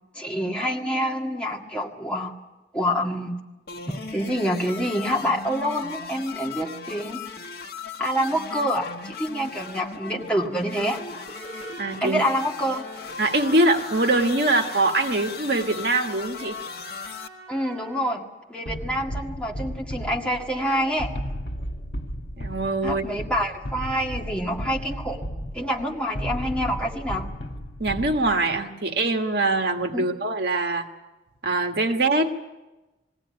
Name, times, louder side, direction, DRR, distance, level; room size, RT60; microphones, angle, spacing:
voice 1, 0.1-2.3 2.7-3.3 4.1-7.2 8.0-11.0 12.0-12.8 17.5-21.1 22.8-25.2 25.5-27.3 29.9-30.1, equal, 5° left, -1 dB, 2.0 m, -27 dB
sound 1, 3.7-17.3, left 5 dB, 55° left, 1.3 m, -37 dB
Trumpet, 10.9-18.3, right 2 dB, 20° right, 5.9 m, -47 dB
voice 2, 11.8-12.2 13.2-16.6 22.4-23.2 27.8-30.9 31.4-32.3, right 2 dB, 60° right, 4 dB, 1.6 m, -23 dB
sound 2, 18.7-28.6, equal, 75° left, 1.9 m, -34 dB
21.0 x 16.5 x 9.7 m, 1.1 s
head